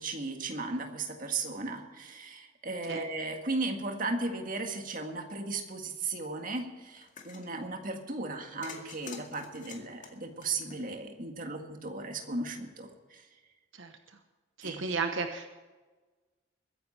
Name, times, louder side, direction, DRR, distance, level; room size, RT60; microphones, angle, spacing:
voice 1, 0.0-13.3 14.6-14.9, right 3 dB, 45° right, 3 dB, 1.9 m, -36 dB
sound 1, 7.0-7.5 8.6-11.1, left 4 dB, 40° left, 2.1 m, -47 dB
voice 2, 13.7-14.2 14.6-15.5, right 4 dB, 80° right, 6 dB, 1.2 m, -34 dB
22.5 x 10.0 x 4.4 m, 1.3 s
head